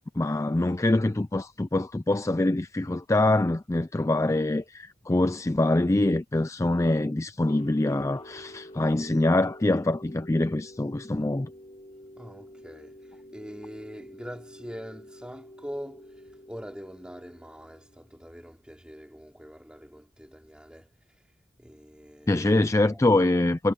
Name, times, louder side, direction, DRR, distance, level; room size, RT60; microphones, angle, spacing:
voice 1, 0.2-11.5 22.3-23.7, left 2 dB, 15° left, 0.4 m, -24 dB
sound 1, 7.5-18.4, equal, 35° left, 3.7 m, -48 dB
voice 2, 12.2-20.9 21.6-22.3 22.9-23.2, equal, 5° right, 2.9 m, -43 dB
head